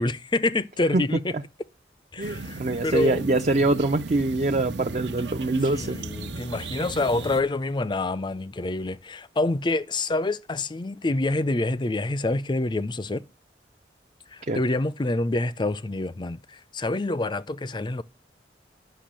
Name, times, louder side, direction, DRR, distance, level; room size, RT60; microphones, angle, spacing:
voice 1, 0.0-1.2 2.1-3.2 5.7-13.2 14.3-18.0, left 2 dB, 25° left, 0.5 m, -27 dB
voice 2, 2.2-6.0 14.5-14.6, right 2 dB, 40° right, 0.6 m, -24 dB
sound 1, 2.2-7.4, right 2 dB, 75° right, 1.0 m, -36 dB
10.5 x 6.0 x 7.5 m
head